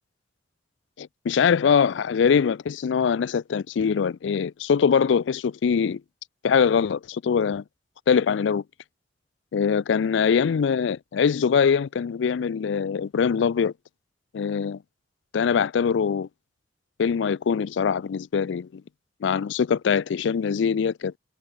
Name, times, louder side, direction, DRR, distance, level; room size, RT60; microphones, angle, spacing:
voice 1, 1.0-6.0 6.4-7.6 8.1-8.6 9.5-13.7 14.3-14.8 15.3-16.3 17.0-18.8 19.2-21.1, left 6 dB, 70° left, 0.4 m, -23 dB
head